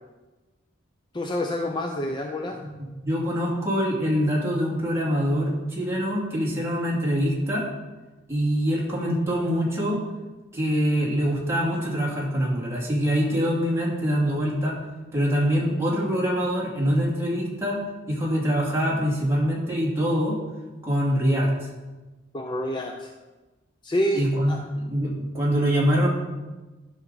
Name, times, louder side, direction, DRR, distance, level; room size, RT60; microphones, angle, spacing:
voice 1, 1.1-2.6 22.3-23.1 23.8-24.6, left 1 dB, 25° left, 3 dB, 0.5 m, -27 dB
voice 2, 3.0-7.7 8.3-10.0 10.5-14.8 15.1-17.8 18.1-20.4 20.8-21.5 24.1-24.6 24.8-26.1, equal, 15° right, -5 dB, 2.4 m, -24 dB
11.5 x 5.8 x 4.0 m, 1.2 s
head